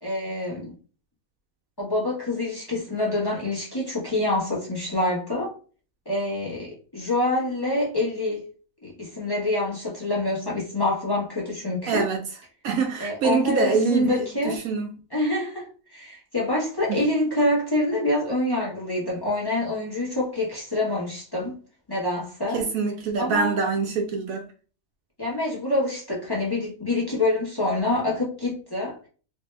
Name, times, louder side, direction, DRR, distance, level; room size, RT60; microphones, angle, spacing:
voice 1, 0.0-0.7 1.8-5.5 6.0-8.4 8.8-12.0 13.0-14.6 15.1-21.6 21.9-22.6 23.2-23.6 25.2-29.0, left 2 dB, 15° left, 1.2 m, -26 dB
voice 2, 11.9-12.3 12.6-14.9 16.9-17.0 22.5-24.5, right 5 dB, 70° right, 1.0 m, -25 dB
3.3 x 2.9 x 3.2 m
omnidirectional pair, 1.6 m